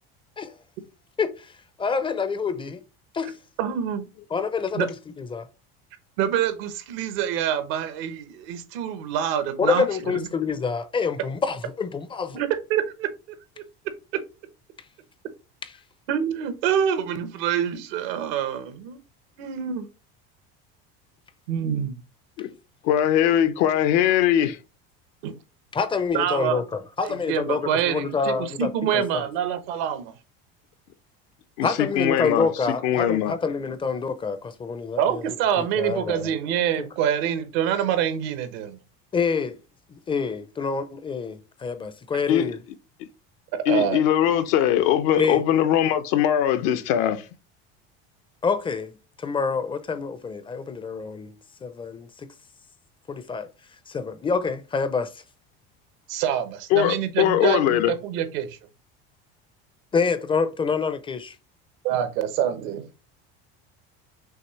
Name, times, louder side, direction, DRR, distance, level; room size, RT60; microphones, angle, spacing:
voice 1, 1.2-1.5 1.8-2.8 3.1-3.3 4.3-5.5 9.6-12.4 15.6-15.7 25.7-29.2 31.6-35.2 35.6-36.3 39.1-39.6 39.9-42.6 45.2-45.4 48.4-51.4 51.6-52.3 53.1-53.5 53.9-55.2 59.9-61.4, left 5 dB, 20° left, 0.4 m, -27 dB
voice 2, 3.6-4.1 4.7-4.9 6.2-10.3 12.3-13.1 16.1-19.0 19.4-19.9 21.5-22.0 25.2-25.3 26.1-26.6 27.0-30.1 35.0-38.8 43.5-44.0 56.1-58.6 61.8-62.9, right 9 dB, 85° right, 1.0 m, -26 dB
voice 3, 22.8-24.6 31.6-32.5 32.8-33.3 42.3-42.5 43.7-47.2 56.7-57.9, left 10 dB, 75° left, 0.7 m, -21 dB
6.2 x 2.8 x 3.1 m
supercardioid pair, 120°, 29 cm